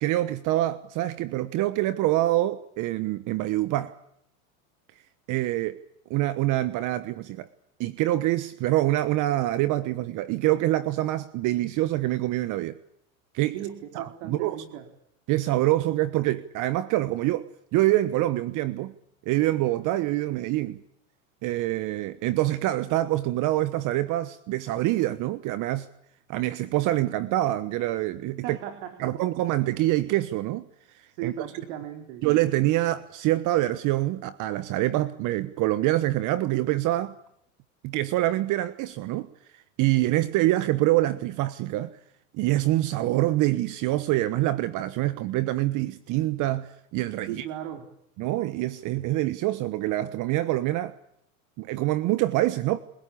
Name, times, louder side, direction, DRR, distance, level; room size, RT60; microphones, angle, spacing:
voice 1, 0.0-4.0 5.3-5.8 6.1-7.5 7.8-12.8 13.3-13.6 13.9-14.6 15.3-18.9 19.2-20.8 21.4-25.9 26.3-28.6 29.0-30.7 31.2-31.3 32.2-37.2 37.8-39.3 39.5-42.0 42.3-47.5 48.2-51.0 51.6-52.8, right 16 dB, 50° right, 1.3 m, -25 dB
voice 2, 13.5-14.9 28.4-29.1 31.1-32.2 47.3-47.9, right 10 dB, 65° right, 4.0 m, -37 dB
28.5 x 17.0 x 8.5 m
supercardioid pair, 115°, 41 cm